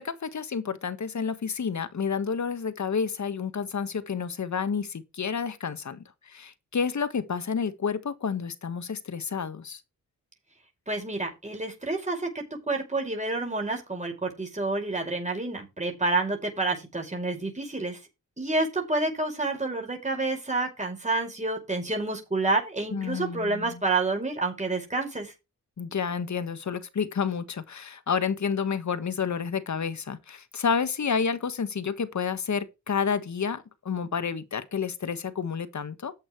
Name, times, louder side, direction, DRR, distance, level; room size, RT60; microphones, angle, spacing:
voice 1, 0.0-9.8 22.9-23.8 25.8-36.1, left 6 dB, 55° left, 1.6 m, -30 dB
voice 2, 10.9-18.0 18.4-25.3, right 3 dB, 20° right, 5.5 m, -29 dB
14.0 x 8.7 x 3.2 m
cardioid pair, 55°, 35 cm